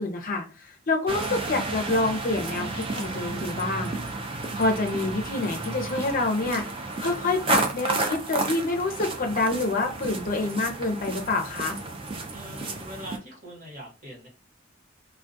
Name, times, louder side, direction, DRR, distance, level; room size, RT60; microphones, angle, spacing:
voice 1, 0.0-3.9 4.5-6.6 7.0-11.8, left 2 dB, 45° left, 3 dB, 0.5 m, -27 dB
sound 1, 1.1-13.2, right 3 dB, 30° right, 0.4 m, -32 dB
voice 2, 12.3-14.3, equal, 45° right, -2 dB, 1.1 m, -42 dB
2.3 x 2.2 x 2.6 m, 0.35 s
head